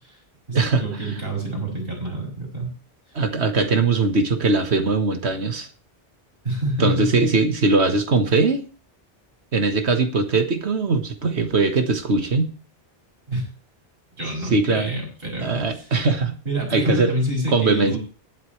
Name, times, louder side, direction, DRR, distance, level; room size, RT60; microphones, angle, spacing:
voice 1, 0.5-2.7 6.4-7.3 13.3-13.5 14.2-15.9 16.4-18.0, right 1 dB, 55° right, 6.3 m, -27 dB
voice 2, 3.2-5.7 6.8-8.6 9.5-12.5 14.5-15.1 15.4-16.4 16.7-17.1 17.5-18.0, right 3 dB, 85° right, 1.7 m, -20 dB
21.0 x 8.1 x 3.2 m
omnidirectional pair, 1.1 m